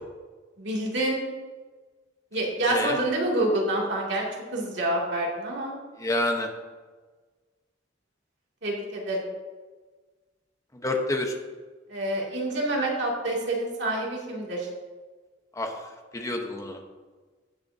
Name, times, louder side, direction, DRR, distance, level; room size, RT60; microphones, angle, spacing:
voice 1, 0.6-1.2 2.3-4.3 4.5-5.7 8.6-9.3 11.9-14.7, right 1 dB, 70° right, -3 dB, 2.4 m, -27 dB
voice 2, 6.0-6.5 10.7-11.3 15.6-15.7 16.1-16.8, left 1 dB, 15° left, 3 dB, 0.9 m, -28 dB
17.5 x 6.7 x 2.7 m, 1.4 s
head